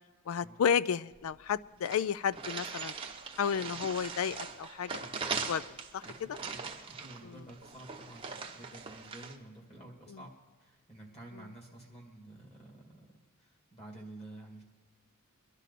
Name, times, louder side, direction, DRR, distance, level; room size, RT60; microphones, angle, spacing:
voice 1, 0.3-2.9 3.4-5.6 5.9-6.4 7.2-7.4, left 7 dB, 70° left, 19 dB, 0.3 m, -32 dB
sound 1, 1.1-1.2 1.5-1.6 1.8-9.4, right 5 dB, 25° right, 0.8 m, -40 dB
voice 2, 6.0-10.3 10.6-14.6, right 1 dB, 25° left, 0 dB, 2.3 m, -51 dB
22.5 x 11.5 x 4.2 m, 1.4 s
head